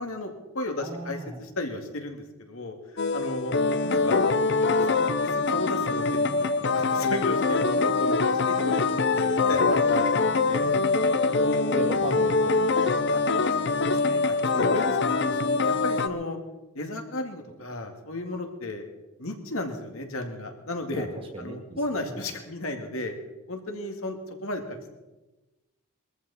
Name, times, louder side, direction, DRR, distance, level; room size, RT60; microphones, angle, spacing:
voice 1, 0.0-2.8 3.1-3.5 3.8-4.2 4.8-8.8 9.2-10.7 11.3-11.7 13.1-13.2 14.0-16.4 16.7-18.8 19.2-21.1 21.4-23.1 23.5-24.9, left 1 dB, 70° left, 4 dB, 2.2 m, -34 dB
voice 2, 0.8-1.4 9.4-9.9 11.7-13.0 20.9-22.3, right 1 dB, 25° right, 3 dB, 2.2 m, -38 dB
sound 1, 3.0-16.1, left 3 dB, 50° left, 0.7 m, -24 dB
22.0 x 14.0 x 4.2 m, 1.1 s
head